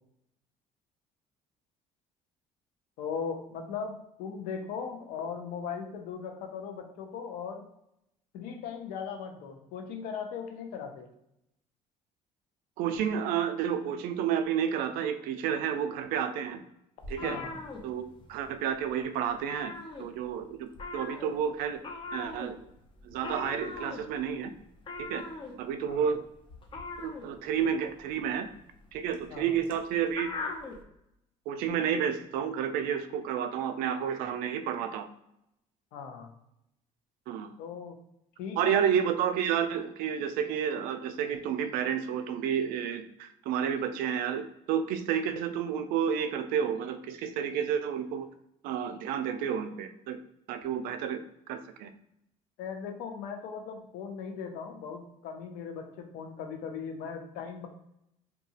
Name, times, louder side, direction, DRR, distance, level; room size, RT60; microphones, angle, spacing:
voice 1, 3.0-7.6 8.3-11.1 17.2-17.5 25.8-26.1 29.3-29.5 35.9-36.3 37.6-38.0 38.4-38.8 52.6-57.7, left 6 dB, 85° left, 4 dB, 0.6 m, -38 dB
voice 2, 12.8-16.6 17.1-17.4 17.8-18.0 18.3-19.7 20.0-21.8 22.1-22.6 23.0-24.5 25.0-25.2 25.6-26.2 27.0-28.5 28.9-30.3 31.5-35.1 37.3-37.5 38.6-48.3 48.6-50.2 50.5-51.9, right 8 dB, 85° right, 9 dB, 0.4 m, -30 dB
sound 1, 17.0-18.5 18.8-19.0 19.3-20.4 20.7-30.8, left 3 dB, 35° left, 0.6 m, -41 dB
2.8 x 2.3 x 2.7 m, 0.81 s
cardioid pair, 100°, 14 cm